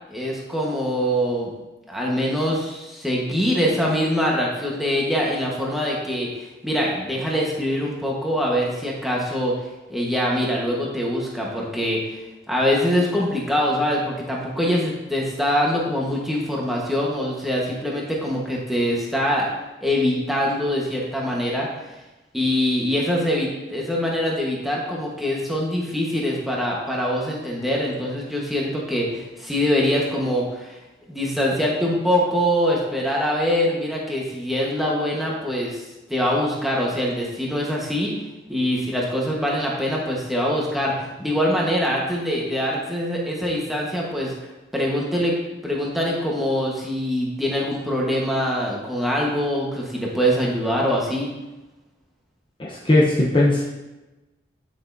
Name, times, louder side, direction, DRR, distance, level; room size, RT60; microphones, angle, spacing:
voice 1, 0.1-1.5 1.9-9.5 9.9-12.0 12.5-19.5 19.8-21.7 22.3-30.7 31.1-35.8 36.1-38.1 38.5-44.3 44.7-51.3, equal, ahead, -4 dB, 1.2 m, -23 dB
voice 2, 52.6-53.6, left 2 dB, 25° left, -4 dB, 0.8 m, -18 dB
9.5 x 6.1 x 2.7 m, 1.1 s
head